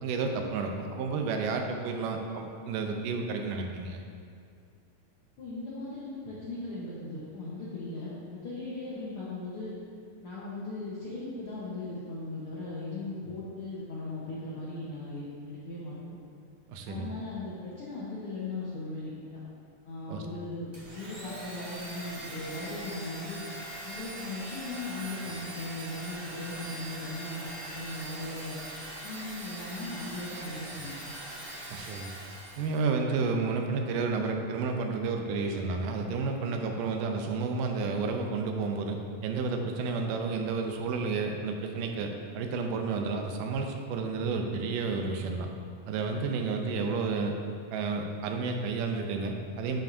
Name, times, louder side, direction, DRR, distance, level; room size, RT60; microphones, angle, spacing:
voice 1, 0.0-4.0 16.7-17.1 20.1-20.2 31.7-32.1 32.6-45.5 45.9-47.3 47.7-49.8, right 4 dB, 80° right, 3 dB, 2.1 m, -31 dB
voice 2, 5.4-9.7 10.2-16.2 16.9-19.4 19.8-23.4 23.8-28.6 29.0-30.9, left 2 dB, 70° left, -9 dB, 1.3 m, -38 dB
Domestic sounds home sounds, 20.7-32.8, right 1 dB, 40° right, 1.7 m, -42 dB
11.5 x 5.7 x 2.6 m, 2.2 s
omnidirectional pair, 4.2 m